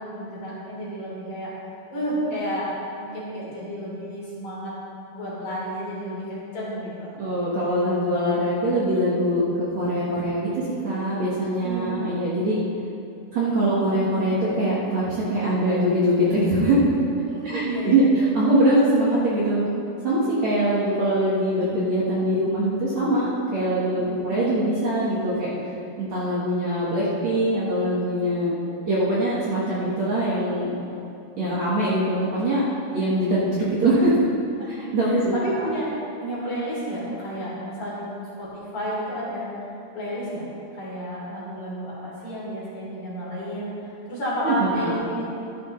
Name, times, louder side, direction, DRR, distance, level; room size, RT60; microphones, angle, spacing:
voice 1, 0.0-1.5 1.9-2.7 3.0-4.7 5.1-7.1 11.6-12.0 17.3-18.1 23.9-24.2 34.6-34.7 35.0-35.9 36.2-38.1 38.4-39.5 39.9-40.4 40.7-45.2, equal, 45° left, -8 dB, 4.4 m, -31 dB
voice 2, 7.2-12.6 13.3-16.9 17.5-19.6 20.0-25.5 26.0-28.5 28.9-30.7 31.4-32.6 32.9-34.2 34.7-35.6 44.4-44.9, right 1 dB, 55° right, -8 dB, 2.3 m, -22 dB
14.5 x 11.5 x 3.3 m, 2.6 s
omnidirectional pair, 4.6 m